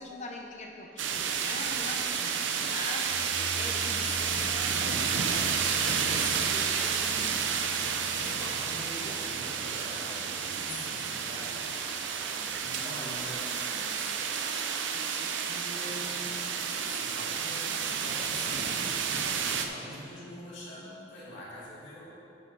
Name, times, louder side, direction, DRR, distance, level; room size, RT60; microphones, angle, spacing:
voice 1, 0.0-5.0 5.3-5.9 14.9-15.4, left 2 dB, 40° left, 1 dB, 0.7 m, -43 dB
sound 1, 1.0-19.7, right 6 dB, 80° right, 0.6 m, -31 dB
sound 2, 3.1-13.3, left 2 dB, 25° right, 1.2 m, -46 dB
voice 2, 3.8-4.5 5.8-7.7 8.1-14.6 14.9-16.5 16.8-22.2, left 1 dB, 85° left, -8 dB, 2.3 m, -44 dB
13.5 x 5.8 x 4.0 m, 2.8 s
head